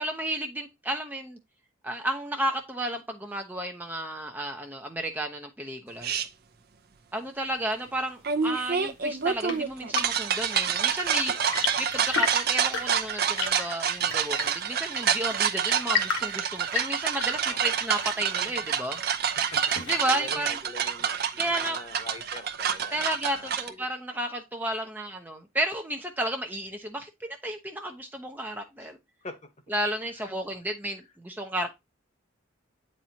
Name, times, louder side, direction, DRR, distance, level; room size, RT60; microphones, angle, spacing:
voice 1, 0.0-1.4 1.8-6.1 7.1-11.3 11.8-19.0 19.9-20.6 21.4-21.8 22.9-29.0 29.7-31.7, right 1 dB, 10° right, 0.7 m, -32 dB
sound 1, 6.0-6.3 8.2-23.7, right 7 dB, 50° right, 0.7 m, -28 dB
Chirp tweet / Engine / Tap, 8.8-20.3, left 5 dB, 65° left, 1.5 m, -35 dB
voice 2, 11.3-11.7 17.4-17.6 19.2-19.6 20.1-23.8 28.8-28.9 29.2-29.5 30.2-30.3, left 2 dB, 35° left, 1.2 m, -44 dB
8.7 x 4.3 x 2.7 m
head